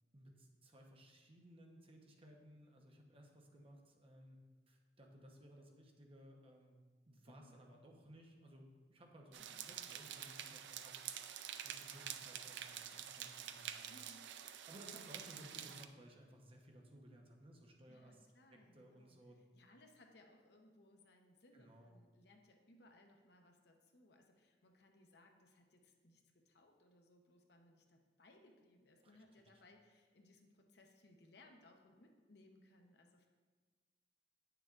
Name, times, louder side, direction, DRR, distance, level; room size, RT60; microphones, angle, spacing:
voice 1, 0.1-4.4 4.7-6.8 7.1-11.0 11.6-13.9 14.7-19.4 21.5-21.9 29.0-29.5, equal, 35° right, 1 dB, 0.9 m, -60 dB
voice 2, 7.2-7.6 9.4-9.7 13.9-14.3 17.9-19.2 19.5-33.3, left 1 dB, 65° left, 3 dB, 0.8 m, -66 dB
sound 1, 9.3-15.9, right 9 dB, 85° right, 0.4 m, -48 dB
9.0 x 6.7 x 2.4 m, 1.4 s
head